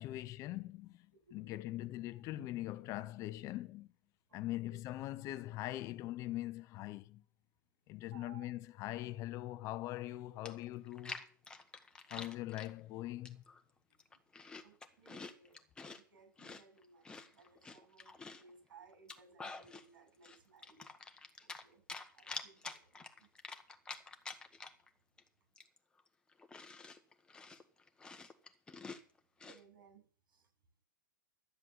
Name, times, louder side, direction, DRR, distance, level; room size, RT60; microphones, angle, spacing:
voice 1, 0.0-3.9 4.3-7.2 7.9-11.3 12.1-13.4, left 15 dB, 30° left, 0.8 m, -42 dB
voice 2, 4.3-4.8 8.1-8.5 13.9-14.0 14.6-15.6 15.9-20.8 21.4-21.8 22.2-23.3 29.4-30.5, right 5 dB, 85° right, 7.8 m, -62 dB
Chewing mastication, 10.1-10.2 10.5-12.7 13.2-13.6 13.9-16.0 16.4-18.5 18.9-19.9 20.2-21.6 21.9-24.9 25.2-25.3 25.6-29.6, left 4 dB, 10° left, 1.3 m, -48 dB
12.5 x 7.7 x 7.6 m
hypercardioid pair, 140°, 11 cm